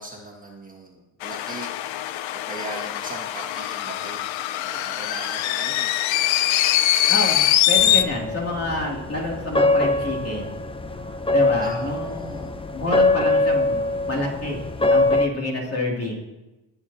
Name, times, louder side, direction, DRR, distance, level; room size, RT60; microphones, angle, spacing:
voice 1, 0.0-1.7 2.3-6.0 11.6-12.5, right 2 dB, 20° right, -2 dB, 1.8 m, -39 dB
sound 1, 1.2-8.0, left 13 dB, 80° left, 0.6 m, -23 dB
voice 2, 7.1-10.6 11.3-16.1, left 1 dB, 30° left, -2 dB, 2.7 m, -28 dB
sound 2, 7.8-15.3, left 2 dB, 10° left, 0.6 m, -23 dB
18.5 x 7.0 x 2.8 m, 1.0 s
cardioid pair, 100°, 46 cm